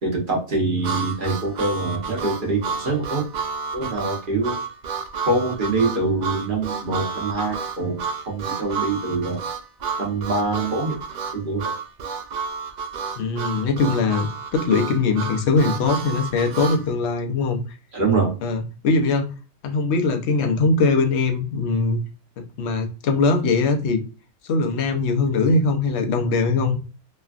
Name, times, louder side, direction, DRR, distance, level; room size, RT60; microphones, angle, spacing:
voice 1, 0.0-3.2 3.7-4.6 5.3-9.4 10.0-11.0 11.3-11.7 17.9-18.4, right 3 dB, 45° right, 1.0 m, -24 dB
Harmonica, 0.8-16.8, right 5 dB, 90° right, 0.3 m, -30 dB
voice 2, 13.2-14.3 14.5-17.6 18.4-19.3 19.6-22.0 22.4-24.0 24.4-26.8, left 3 dB, 65° left, 0.9 m, -21 dB
3.2 x 2.3 x 2.3 m
omnidirectional pair, 1.3 m